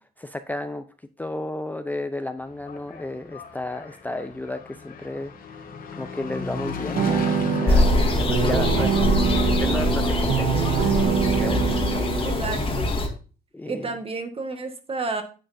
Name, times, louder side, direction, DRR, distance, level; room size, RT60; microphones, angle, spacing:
voice 1, 0.2-0.8 1.2-5.3 5.9-7.2 7.5-10.9 11.3-12.3 13.5-13.9, left 2 dB, 10° left, 9 dB, 0.5 m, -33 dB
Engine, 2.4-11.3, left 5 dB, 60° left, 1.7 m, -36 dB
sound 1, 6.9-12.7, right 9 dB, 80° right, 0.6 m, -25 dB
sound 2, 7.7-13.1, left 2 dB, 35° left, 1.7 m, -23 dB
voice 2, 8.5-8.9 12.2-12.9 13.6-15.2, right 3 dB, 35° right, 6 dB, 1.6 m, -31 dB
9.9 x 7.9 x 2.7 m, 0.36 s
cardioid pair, 115°, 16 cm